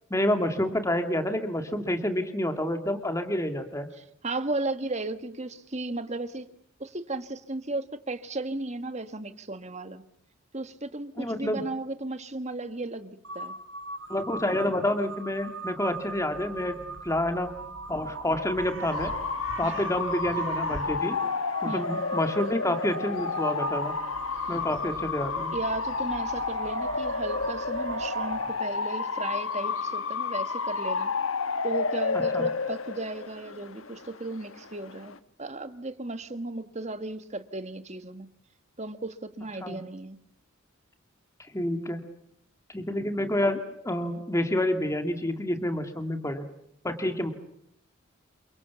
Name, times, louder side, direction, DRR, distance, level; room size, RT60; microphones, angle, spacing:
voice 1, 0.1-3.9 11.2-11.6 14.1-16.8 17.0-17.5 17.9-19.1 19.6-21.2 21.6-23.9 24.5-25.6 32.3-32.5 39.6-39.8 41.5-42.0 42.7-46.4 46.8-47.3, left 1 dB, 15° left, 6 dB, 2.4 m, -28 dB
voice 2, 4.0-6.5 6.8-10.0 10.5-13.5 19.6-19.9 21.6-22.0 25.5-31.1 31.6-38.3 38.8-40.2, right 2 dB, 35° right, 9 dB, 1.7 m, -35 dB
Crow, 13.2-28.7, right 3 dB, 70° right, 2.5 m, -38 dB
Bark / Motor vehicle (road) / Siren, 18.9-35.2, left 5 dB, 85° left, 1.5 m, -31 dB
29.0 x 24.5 x 7.1 m, 0.73 s
head